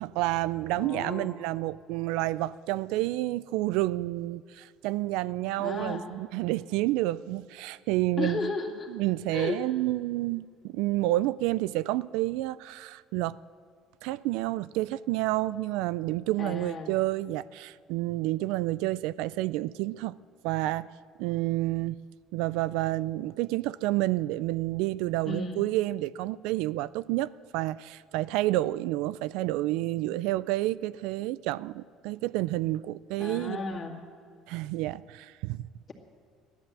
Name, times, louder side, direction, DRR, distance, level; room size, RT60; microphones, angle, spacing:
voice 1, 0.0-8.5 8.9-13.4 14.0-20.1 20.4-20.9 21.2-22.0 22.3-33.6 34.5-35.6, right 17 dB, 85° right, 0.3 m, -29 dB
voice 2, 0.8-1.3 5.6-6.1 8.2-8.9 9.3-9.6 16.4-16.9 25.2-25.6 33.2-34.0, left 4 dB, 30° left, 2.1 m, -34 dB
15.5 x 11.5 x 7.5 m
cardioid pair, 145°, 0 cm